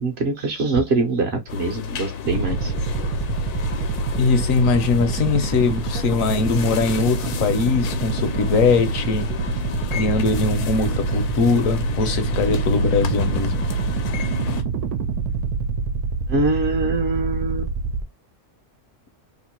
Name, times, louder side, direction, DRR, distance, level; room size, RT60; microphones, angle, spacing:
voice 1, 0.0-2.9 7.6-7.7 16.3-17.7, right 3 dB, 50° right, 0.9 m, -23 dB
sound 1, 1.5-14.6, left 7 dB, 85° left, 1.2 m, -31 dB
sound 2, 2.3-18.0, right 5 dB, 85° right, 1.1 m, -26 dB
voice 2, 4.2-9.4 9.9-13.7, left 4 dB, 70° left, 1.0 m, -21 dB
2.9 x 2.5 x 4.3 m
omnidirectional pair, 1.6 m